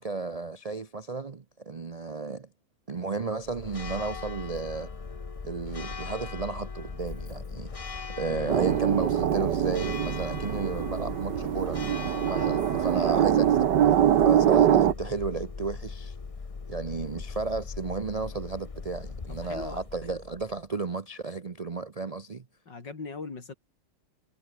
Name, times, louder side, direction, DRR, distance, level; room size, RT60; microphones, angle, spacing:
voice 1, 0.0-2.5 2.9-4.9 5.4-7.7 8.2-11.8 12.3-13.7 14.2-16.2 16.7-22.4, right 4 dB, 55° right, 0.4 m, -33 dB
Church bell, 3.4-20.7, left 4 dB, 30° left, 0.7 m, -39 dB
sound 1, 8.5-14.9, right 10 dB, 75° right, 1.7 m, -24 dB
voice 2, 19.3-19.8 22.7-23.5, left 4 dB, 85° left, 4.3 m, -40 dB
omnidirectional pair, 1.9 m